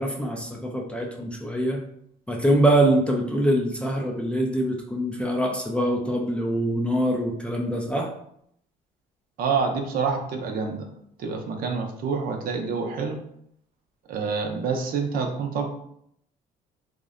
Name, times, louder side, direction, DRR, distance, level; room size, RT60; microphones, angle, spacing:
voice 1, 0.0-1.8 2.3-8.1, right 1 dB, 5° left, 0 dB, 0.3 m, -24 dB
voice 2, 9.4-10.9 11.2-13.2 14.1-15.7, right 5 dB, 60° right, 3 dB, 0.5 m, -27 dB
2.5 x 2.1 x 2.4 m, 0.70 s
cardioid pair, 110°, 17 cm